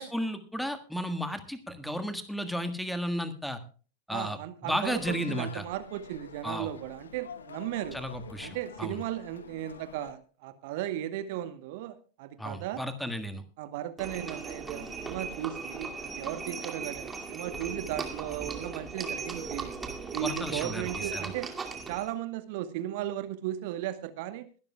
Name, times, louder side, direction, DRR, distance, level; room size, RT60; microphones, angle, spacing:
voice 1, 0.0-3.6 4.1-4.4 4.6-5.6 6.4-6.7 7.9-9.0 12.4-13.4 20.2-21.3, equal, ahead, 10 dB, 1.6 m, -33 dB
voice 2, 4.1-8.0 8.4-12.8 13.6-19.7 20.1-21.5 21.9-24.5, right 13 dB, 50° right, 12 dB, 1.1 m, -36 dB
sound 1, 4.8-10.1, left 6 dB, 70° left, 1.1 m, -47 dB
Livestock farm animals working animals, 14.0-22.1, right 4 dB, 15° right, 2.4 m, -38 dB
22.0 x 12.5 x 2.3 m, 0.37 s
figure-of-eight pair, 90°, 0 cm